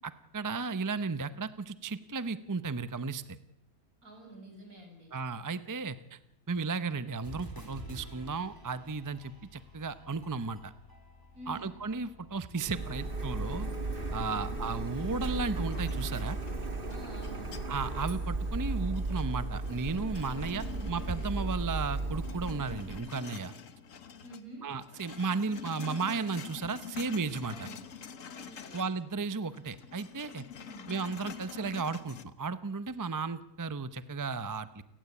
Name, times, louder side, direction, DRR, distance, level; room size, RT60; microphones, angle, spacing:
voice 1, 0.3-3.4 5.1-6.2 6.5-10.7 11.5-13.7 14.1-16.4 17.7-23.5 24.6-27.7 28.7-30.4 30.9-34.8, right 4 dB, 20° right, 12 dB, 0.6 m, -34 dB
voice 2, 4.0-5.2 11.3-11.8 14.3-14.7 16.9-17.7 20.4-20.9 24.2-24.7 27.5-27.8 28.3-28.9 30.5-30.9, right 1 dB, 75° right, 3 dB, 7.5 m, -49 dB
sound 1, 7.2-13.9, equal, 15° left, 3.9 m, -51 dB
Printer, 12.6-23.0, right 2 dB, 35° right, 2.1 m, -35 dB
sound 2, 15.7-18.0 18.4-21.6 21.9-24.4 24.7-29.0 29.3-32.2, left 7 dB, 60° left, 1.6 m, -47 dB
29.5 x 16.5 x 8.4 m, 0.89 s
omnidirectional pair, 1.5 m